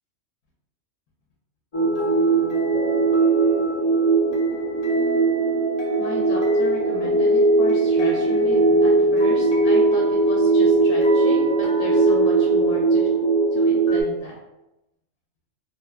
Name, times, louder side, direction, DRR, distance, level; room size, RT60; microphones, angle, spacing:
sound 1, 1.7-14.0, right 3 dB, 45° left, 0.4 m, -19 dB
voice 1, 6.0-13.1 13.5-14.3, left 1 dB, 75° left, -2 dB, 0.9 m, -35 dB
2.9 x 2.1 x 2.3 m, 0.94 s
omnidirectional pair, 1.4 m